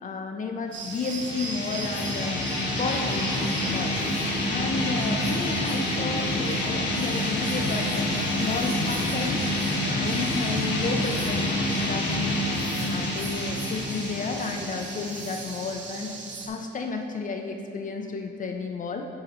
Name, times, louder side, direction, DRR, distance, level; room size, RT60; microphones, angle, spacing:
voice 1, 0.0-2.4 2.8-3.3 3.7-4.0 4.4-8.1 8.4-9.4 9.9-12.5 12.9-16.2 16.4-19.1, left 4 dB, 40° left, 4 dB, 0.5 m, -32 dB
sound 1, 0.7-16.5, right 4 dB, 70° right, 1.0 m, -39 dB
sound 2, 0.8-16.2, left 1 dB, 80° left, 1.5 m, -28 dB
11.5 x 3.9 x 4.2 m, 2.6 s
cardioid pair, 90°, 20 cm